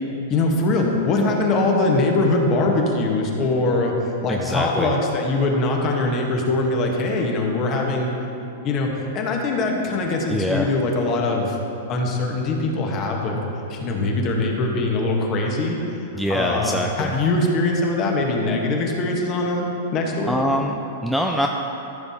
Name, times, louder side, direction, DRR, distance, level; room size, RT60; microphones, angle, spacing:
voice 1, 0.3-8.1 8.6-11.6 11.9-13.4 13.7-16.0 16.3-20.3, left 2 dB, 30° left, 0 dB, 1.2 m, -22 dB
voice 2, 4.3-4.9 10.3-10.7 16.1-17.2 20.3-21.5, equal, ahead, 0 dB, 0.3 m, -24 dB
14.0 x 6.9 x 2.8 m, 2.9 s
supercardioid pair, 150°, 0 cm